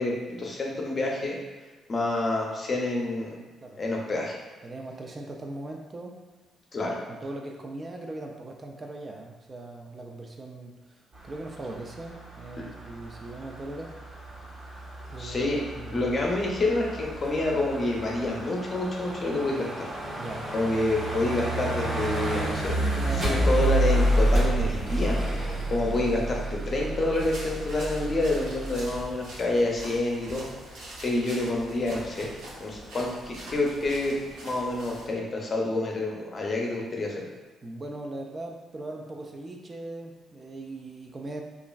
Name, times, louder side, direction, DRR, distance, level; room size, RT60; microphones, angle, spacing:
voice 1, 0.0-1.4 1.9-3.4 3.8-4.4 6.7-7.0 12.6-12.7 15.2-15.6 15.9-19.7 20.5-22.7 23.2-25.2 25.7-30.5 31.0-32.3 32.6-34.2 34.4-37.3, left 2 dB, 40° left, -1 dB, 0.6 m, -28 dB
voice 2, 4.6-6.2 6.8-14.0 15.0-16.1 20.2-20.5 22.8-23.7 37.6-41.4, right 2 dB, 35° right, 1 dB, 0.3 m, -39 dB
sound 1, 11.1-29.0, right 1 dB, 60° right, 1.0 m, -30 dB
sound 2, 27.1-35.1, right 1 dB, 85° right, 0.7 m, -43 dB
3.0 x 2.4 x 2.3 m, 1.3 s
cardioid pair, 90°, 0 cm